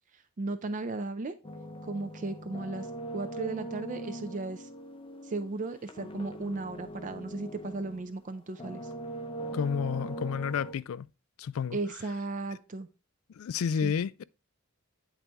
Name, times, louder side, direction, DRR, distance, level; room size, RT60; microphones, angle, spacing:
voice 1, 0.1-1.3 1.8-2.9 3.1-4.7 5.2-8.9 11.7-12.9 13.8-13.9, right 3 dB, 40° right, 0.4 m, -35 dB
sound 1, 1.4-8.1 8.5-10.7, right 1 dB, 25° left, 0.6 m, -41 dB
voice 2, 9.5-11.1 11.4-11.8 13.4-14.2, left 7 dB, 80° left, 0.3 m, -30 dB
8.9 x 4.1 x 3.4 m
head